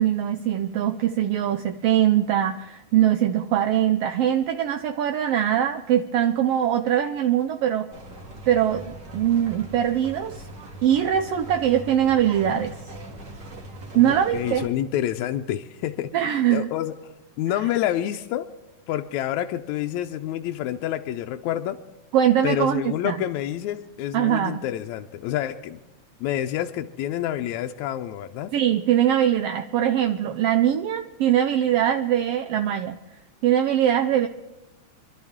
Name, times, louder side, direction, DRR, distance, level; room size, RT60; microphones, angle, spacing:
voice 1, 0.0-7.9 8.5-10.5 10.8-12.8 13.9-14.7 16.1-16.7 22.1-23.2 24.1-24.6 28.5-33.0 33.4-34.3, right 10 dB, 80° right, 7 dB, 1.4 m, -22 dB
sound 1, 7.9-14.7, right 1 dB, 40° right, 2.1 m, -41 dB
voice 2, 13.9-16.1 16.5-17.0 17.4-18.5 18.9-21.8 22.4-25.8 26.2-28.5, left 12 dB, 80° left, 5 dB, 1.9 m, -28 dB
26.5 x 12.0 x 3.6 m, 1.0 s
omnidirectional pair, 3.4 m